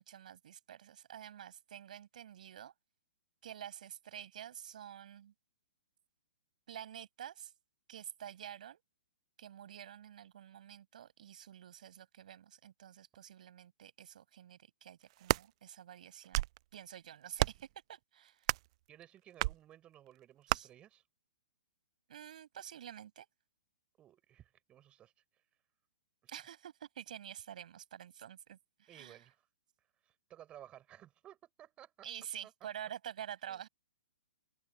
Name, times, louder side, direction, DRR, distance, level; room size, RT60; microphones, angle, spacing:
voice 1, 0.0-2.7 3.4-5.3 6.7-7.5 7.9-8.8 9.4-16.4 16.7-18.5 20.5-20.7 22.1-23.3 26.3-29.2 32.0-33.7, right 10 dB, 55° right, 6.7 m, -49 dB
sound 1, 15.0-15.5 16.1-16.6 17.4-17.7 18.4-18.7 19.4-19.6 20.5-20.6, right 18 dB, 40° right, 0.3 m, -32 dB
voice 2, 18.9-21.0 24.0-25.4 26.2-26.3 28.9-29.4 30.0-32.1 32.4-32.5 33.5-33.6, right 12 dB, 20° right, 6.5 m, -57 dB
figure-of-eight pair, 120°, 5 cm